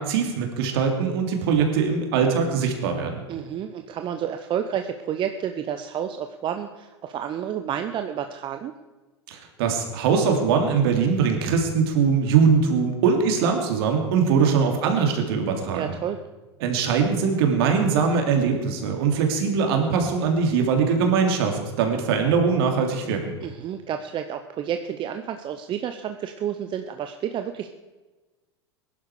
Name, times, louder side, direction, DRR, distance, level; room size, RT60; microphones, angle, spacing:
voice 1, 0.0-3.2 9.3-15.9 16.6-23.4, right 6 dB, 60° right, 3 dB, 3.0 m, -22 dB
voice 2, 3.3-8.7 15.7-16.2 23.4-27.7, right 9 dB, 35° right, 7 dB, 0.9 m, -30 dB
20.0 x 11.5 x 5.0 m, 1.2 s
hypercardioid pair, 90°, 14 cm